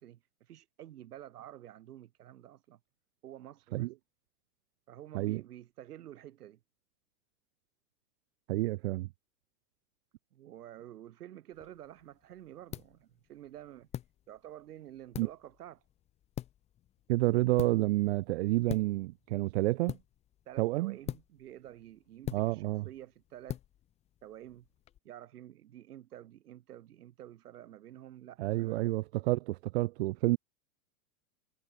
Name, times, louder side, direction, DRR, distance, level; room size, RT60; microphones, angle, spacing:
voice 1, 0.0-2.8 3.2-3.9 4.9-6.6 10.3-13.9 14.3-15.8 20.5-23.6 24.2-24.7 25.0-28.8, right 12 dB, 80° right, 5.6 m, -50 dB
voice 2, 8.5-9.1 15.2-15.3 17.1-20.0 20.6-21.0 22.3-22.9 28.4-30.4, right 19 dB, 45° right, 0.8 m, -29 dB
sound 1, 11.5-25.0, left 12 dB, 15° left, 0.8 m, -46 dB
supercardioid pair, 165°, 45 cm